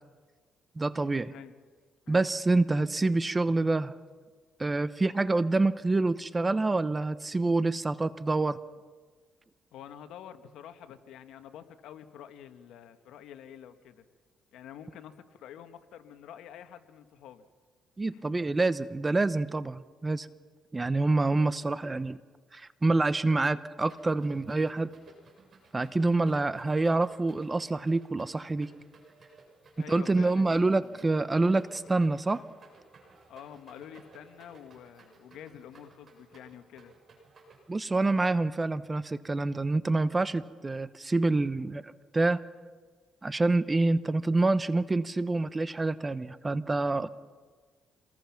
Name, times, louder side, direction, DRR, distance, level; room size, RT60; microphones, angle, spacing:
voice 1, 0.8-1.3 2.1-3.9 4.6-8.6 18.0-20.3 20.7-22.2 22.5-24.9 25.7-28.7 29.9-32.4 37.7-42.4 43.2-47.1, right 2 dB, 20° right, 14 dB, 0.9 m, -27 dB
voice 2, 9.7-14.0 14.5-17.5 18.1-18.4 29.8-31.1 33.3-36.9, left 9 dB, 85° left, 9 dB, 1.4 m, -48 dB
sound 1, 23.8-37.6, right 3 dB, 45° right, 7.0 m, -57 dB
27.0 x 20.0 x 5.9 m, 1.5 s
cardioid pair, 90°, 0 cm